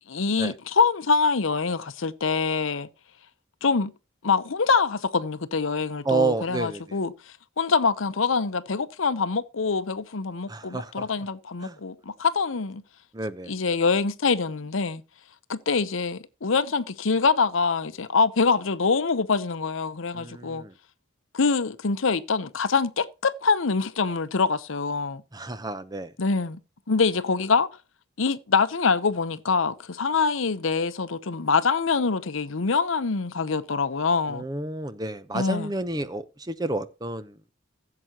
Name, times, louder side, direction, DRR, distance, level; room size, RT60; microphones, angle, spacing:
voice 1, 0.1-2.9 3.6-3.9 4.2-7.1 7.6-12.8 13.5-15.0 15.5-20.6 21.3-25.2 26.2-26.6 26.9-27.7 28.2-34.4 35.3-35.7, left 4 dB, 70° left, 0.8 m, -24 dB
voice 2, 6.0-7.0 10.5-11.1 11.6-11.7 13.1-13.5 20.1-20.7 25.3-26.1 34.3-37.3, right 3 dB, 20° right, 0.7 m, -30 dB
15.5 x 7.7 x 2.9 m
head